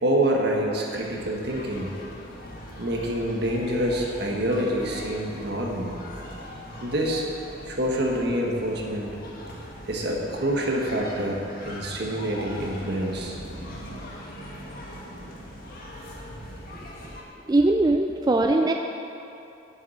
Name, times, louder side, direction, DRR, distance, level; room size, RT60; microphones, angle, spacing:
voice 1, 0.0-1.9 2.8-6.0 6.8-7.2 7.7-9.1 9.8-13.4, right 1 dB, 60° right, -1 dB, 1.6 m, -26 dB
sound 1, 0.9-17.2, equal, 50° left, 1.6 m, -40 dB
voice 2, 17.5-18.7, right 2 dB, 20° right, 3 dB, 0.3 m, -20 dB
8.2 x 7.1 x 8.5 m, 2.9 s
head